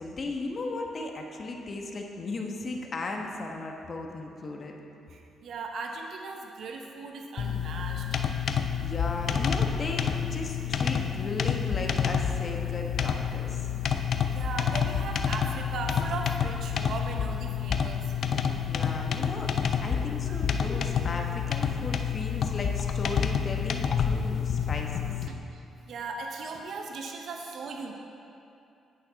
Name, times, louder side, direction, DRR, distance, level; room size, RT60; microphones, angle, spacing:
voice 1, 0.0-4.8 8.8-13.7 18.7-19.5 19.8-25.1, left 2 dB, 40° left, 1 dB, 1.1 m, -36 dB
voice 2, 5.1-8.2 14.3-18.1 20.3-20.4 25.3-27.9, right 4 dB, 65° right, 2 dB, 0.8 m, -38 dB
sound 1, 7.4-25.3, left 7 dB, 60° left, 0.5 m, -29 dB
8.6 x 8.3 x 4.0 m, 2.7 s
cardioid pair, 85°, 0 cm